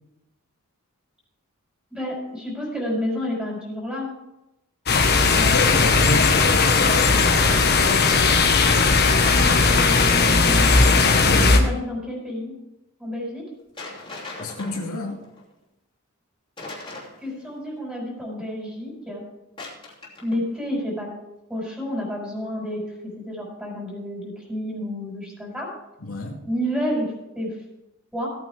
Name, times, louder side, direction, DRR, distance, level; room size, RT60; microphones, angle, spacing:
voice 1, 1.9-4.1 9.2-10.7 11.5-12.5 13.0-13.4 17.2-19.3 20.2-21.1 21.5-25.7 26.5-27.1 27.3-27.6 28.1-28.3, equal, 5° right, -2 dB, 4.9 m, -30 dB
sound 1, 4.9-11.6, left 4 dB, 50° left, 1.3 m, -17 dB
voice 2, 5.3-7.2 14.4-15.2 26.0-26.4, left 2 dB, 80° left, -1 dB, 2.5 m, -28 dB
sound 2, 10.5-11.3 13.8-15.4 16.6-17.5 19.6-20.4, left 2 dB, 25° left, 3.1 m, -39 dB
17.0 x 9.1 x 3.5 m, 0.92 s
head